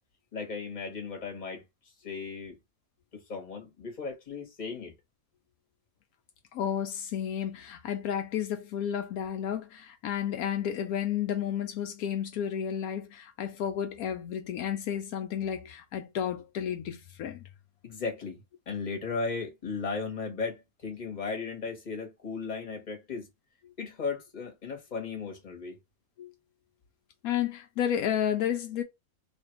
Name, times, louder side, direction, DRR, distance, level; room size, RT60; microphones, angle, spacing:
voice 1, 0.3-1.6 2.0-2.5 3.1-4.9 17.8-23.3 23.8-25.8, left 4 dB, 30° left, 1.2 m, -36 dB
voice 2, 6.5-17.4 26.2-26.3 27.2-28.8, left 9 dB, 75° left, 1.0 m, -32 dB
3.2 x 2.4 x 4.4 m
omnidirectional pair, 1.6 m